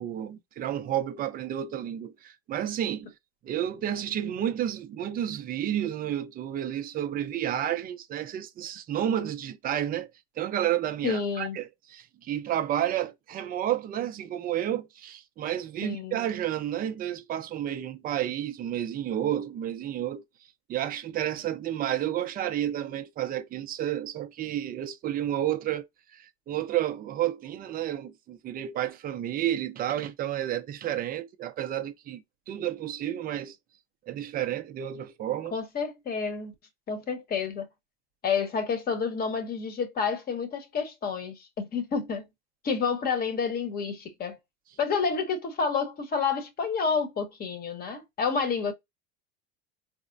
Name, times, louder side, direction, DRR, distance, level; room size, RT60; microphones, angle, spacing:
voice 1, 0.0-3.1 3.4-10.1 10.4-20.2 20.7-25.9 26.1-33.6 34.1-35.6, right 11 dB, 30° right, 0.5 m, -31 dB
voice 2, 11.0-11.6 15.8-16.2 35.5-36.5 36.9-37.7 38.2-42.3 42.6-44.4 44.8-48.7, left 5 dB, 30° left, 0.9 m, -29 dB
4.2 x 2.1 x 2.5 m
supercardioid pair, 130°, 32 cm